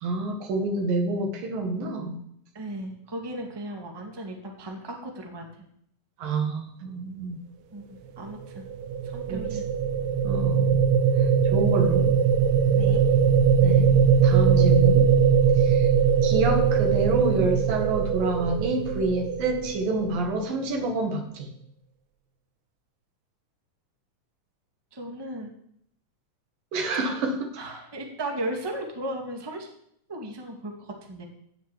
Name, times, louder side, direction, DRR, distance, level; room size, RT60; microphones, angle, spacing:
voice 1, 0.0-2.2 6.2-7.4 9.3-9.6 10.2-10.9 11.2-12.1 13.6-13.9 14.2-15.1 15.6-15.9 16.2-21.5 26.7-27.5, right 2 dB, 85° right, 4 dB, 3.8 m, -28 dB
voice 2, 2.5-5.5 7.7-8.7 9.0-9.7 10.3-10.5 12.7-13.1 24.9-25.5 27.6-29.7 30.1-31.2, right 1 dB, 10° right, 2 dB, 1.6 m, -36 dB
sound 1, 8.4-20.6, right 7 dB, 70° right, 1.9 m, -21 dB
14.5 x 7.0 x 8.7 m, 0.72 s
omnidirectional pair, 3.9 m